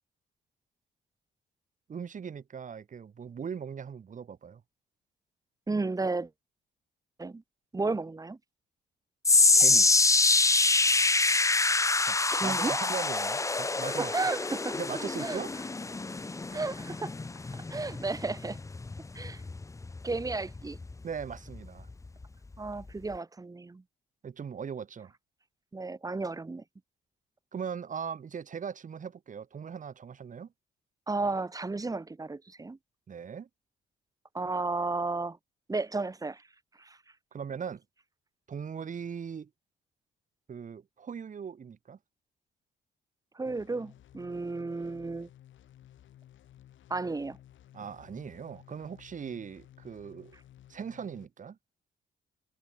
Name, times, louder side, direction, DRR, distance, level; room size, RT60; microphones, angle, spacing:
voice 1, 1.9-4.6 9.5-9.9 12.0-14.2 14.7-15.6 21.0-21.9 24.2-25.1 27.5-30.5 33.1-33.5 37.3-37.8 38.5-39.5 40.5-42.0 47.7-50.4 50.7-51.6, right 7 dB, 40° right, 1.3 m, -39 dB
voice 2, 5.7-6.3 7.2-7.4 7.7-8.4 12.3-12.8 13.8-14.8 15.2-15.4 16.5-17.1 17.7-18.6 19.1-19.4 20.0-20.8 22.6-23.8 25.7-26.6 31.1-32.8 34.3-35.4 35.7-36.4 36.8-37.0 43.3-45.3 46.9-47.4, right 3 dB, 15° right, 1.0 m, -33 dB
sound 1, 9.2-21.6 21.9-22.2 22.9-23.0, left 3 dB, 15° left, 0.7 m, -26 dB
sound 2, 43.5-51.2, left 12 dB, 75° left, 3.8 m, -56 dB
cardioid pair, 90°, 20 cm